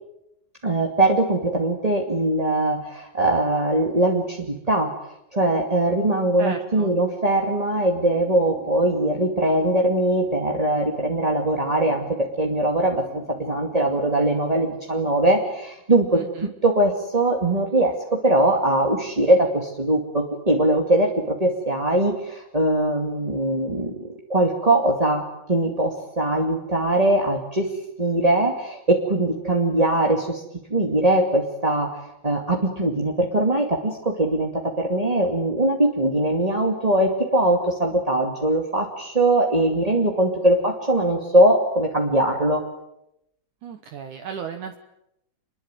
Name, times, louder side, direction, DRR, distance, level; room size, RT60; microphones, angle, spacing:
voice 1, 0.6-25.2 25.5-27.7 28.0-30.4 30.7-32.0 32.2-42.6, right 1 dB, 15° right, 0 dB, 1.7 m, -21 dB
voice 2, 6.4-6.9 16.1-16.5 43.6-44.8, right 7 dB, 65° right, 7 dB, 2.4 m, -34 dB
sound 1, 8.0-14.4, left 5 dB, 90° left, 6.8 m, -47 dB
27.0 x 22.5 x 9.2 m, 0.83 s
omnidirectional pair, 4.4 m